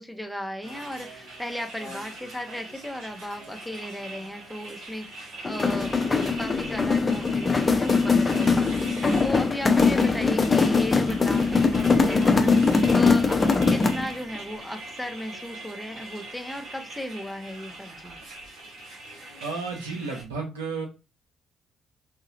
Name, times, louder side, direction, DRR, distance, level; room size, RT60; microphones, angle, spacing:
voice 1, 0.0-18.2, left 1 dB, 5° left, 4 dB, 0.9 m, -36 dB
sound 1, 0.6-20.2, right 2 dB, 65° right, 1.4 m, -42 dB
sound 2, 5.4-14.1, left 4 dB, 35° left, 0.7 m, -21 dB
voice 2, 19.4-20.9, right 4 dB, 85° right, 1 dB, 0.8 m, -32 dB
4.2 x 2.6 x 2.6 m, 0.29 s
hypercardioid pair, 45°, 0 cm